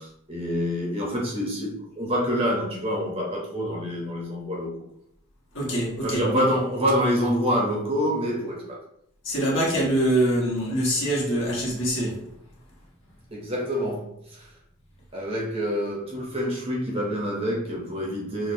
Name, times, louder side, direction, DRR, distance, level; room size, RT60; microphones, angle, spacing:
voice 1, 0.0-4.7 6.0-8.8 13.3-14.5 15.1-18.5, equal, 25° right, 0.7 m, -27 dB
voice 2, 5.5-6.4 9.2-12.2, right 1 dB, 55° left, 1.3 m, -24 dB
6.1 x 2.2 x 2.6 m
head